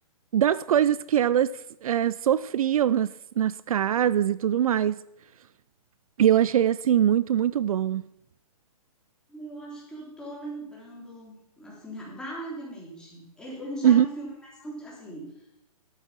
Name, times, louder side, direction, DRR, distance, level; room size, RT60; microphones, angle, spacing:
voice 1, 0.3-5.0 6.2-8.0 13.8-14.1, right 10 dB, 70° right, 0.4 m, -22 dB
voice 2, 9.3-15.3, right 1 dB, 5° left, 3.5 m, -39 dB
12.0 x 8.5 x 6.1 m
hypercardioid pair, 150°, 19 cm